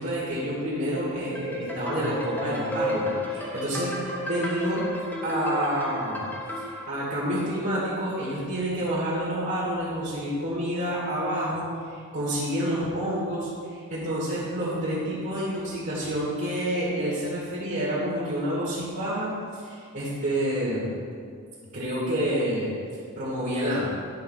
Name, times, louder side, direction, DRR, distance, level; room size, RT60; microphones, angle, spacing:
voice 1, 0.0-3.9 4.3-4.8 5.2-6.3 6.9-20.9 21.7-22.7 23.2-23.9, equal, 55° right, -9 dB, 2.3 m, -28 dB
sound 1, 1.3-6.8, left 1 dB, 10° left, 0.9 m, -32 dB
10.5 x 4.1 x 5.7 m, 2.1 s
head